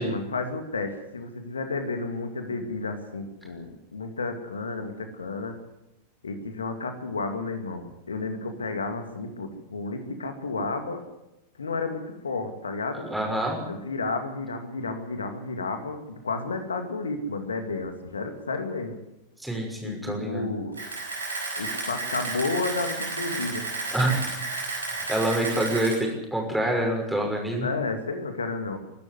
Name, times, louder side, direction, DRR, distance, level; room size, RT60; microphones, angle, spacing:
voice 1, 0.0-5.6 6.2-11.0 11.6-13.1 13.7-19.0 19.8-20.8 21.6-23.7 27.6-28.8, left 3 dB, 70° left, 6 dB, 2.3 m, -32 dB
voice 2, 12.9-13.6 19.4-20.5 23.9-24.3 25.1-27.7, right 1 dB, 5° right, 1 dB, 6.0 m, -26 dB
Camera, 20.7-26.0, right 3 dB, 75° right, 6.2 m, -32 dB
23.5 x 12.0 x 9.7 m, 0.90 s
figure-of-eight pair, 90°, 0 cm